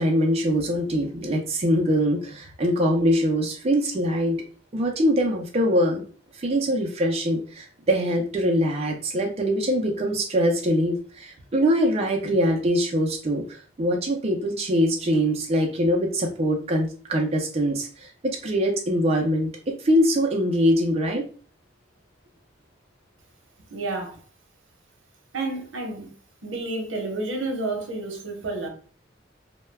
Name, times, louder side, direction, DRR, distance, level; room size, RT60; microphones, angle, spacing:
voice 1, 0.0-4.4 4.7-6.0 6.3-21.2, equal, 35° right, 0.4 m, -23 dB
voice 2, 23.7-24.2 25.3-26.1 26.4-28.7, right 2 dB, 90° right, 0.7 m, -30 dB
2.2 x 2.1 x 3.2 m
head